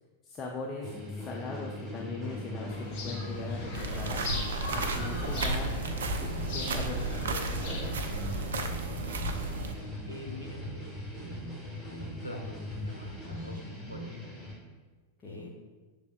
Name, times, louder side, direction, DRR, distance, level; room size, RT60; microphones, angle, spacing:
voice 1, 0.2-0.9 1.2-2.7 3.0-4.3 4.7-5.8 6.2-7.0 7.3-8.1 15.2-15.5, left 3 dB, 25° left, -1 dB, 0.5 m, -40 dB
sound 1, 0.8-14.5, left 1 dB, ahead, 1.3 m, -40 dB
sound 2, 2.7-8.7, left 2 dB, 45° left, 1.0 m, -40 dB
sound 3, 3.7-9.7, right 3 dB, 65° right, 0.4 m, -33 dB
voice 2, 10.1-14.2 15.2-15.5, equal, 90° left, 2 dB, 0.6 m, -45 dB
6.6 x 3.3 x 2.3 m, 1.3 s
figure-of-eight pair, 90°, 0 cm